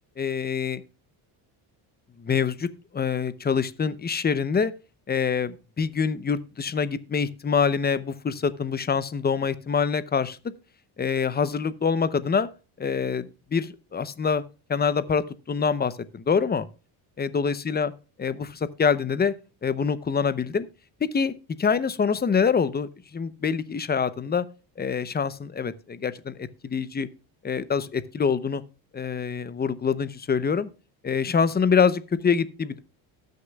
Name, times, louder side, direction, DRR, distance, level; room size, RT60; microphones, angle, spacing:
voice 1, 0.2-0.8 2.2-2.7 2.9-4.7 5.1-10.5 11.0-12.5 12.8-14.4 14.7-16.7 17.2-17.9 18.2-19.3 19.6-20.7 21.0-21.3 21.6-24.5 24.8-27.1 27.4-28.6 28.9-30.7 31.0-32.8, left 6 dB, 20° left, 15 dB, 0.7 m, -25 dB
18.5 x 6.6 x 2.3 m, 0.34 s
cardioid pair, 105°, 49 cm